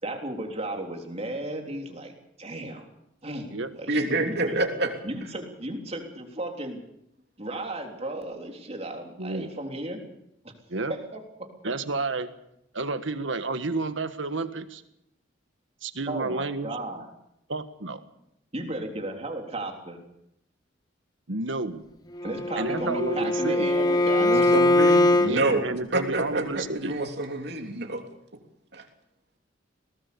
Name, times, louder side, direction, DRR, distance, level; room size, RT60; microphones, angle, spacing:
voice 1, 0.0-2.1 2.4-2.9 3.2-4.6 5.0-6.8 7.4-10.0 10.4-10.5 10.9-11.5 16.1-17.1 18.5-20.0 22.2-24.6 25.0-25.6, right 1 dB, 35° right, 2 dB, 3.6 m, -35 dB
voice 2, 3.9-4.9 24.2-25.7 25.9-28.0 28.7-28.8, right 2 dB, 60° right, 3 dB, 3.2 m, -27 dB
voice 3, 9.2-9.5 10.7-10.9 11.6-12.3 12.7-14.8 15.8-16.8 17.5-18.0 21.3-21.8 22.6-23.7 25.3-27.0, right 3 dB, 85° right, 10 dB, 1.6 m, -30 dB
Bowed string instrument, 22.2-25.3, left 2 dB, 20° left, 1.1 m, -22 dB
22.0 x 18.5 x 7.0 m, 0.81 s
head